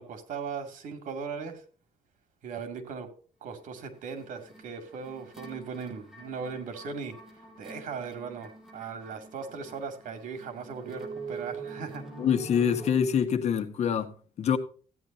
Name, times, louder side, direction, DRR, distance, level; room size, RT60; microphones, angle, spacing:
voice 1, 0.0-1.6 2.4-3.1 3.4-7.1 7.6-12.0, right 5 dB, 75° right, 2.5 m, -38 dB
sound 1, 3.7-12.9, right 4 dB, ahead, 7.1 m, -45 dB
voice 2, 12.2-14.6, left 8 dB, 55° left, 1.4 m, -26 dB
15.0 x 9.7 x 2.8 m
cardioid pair, 130°, 13 cm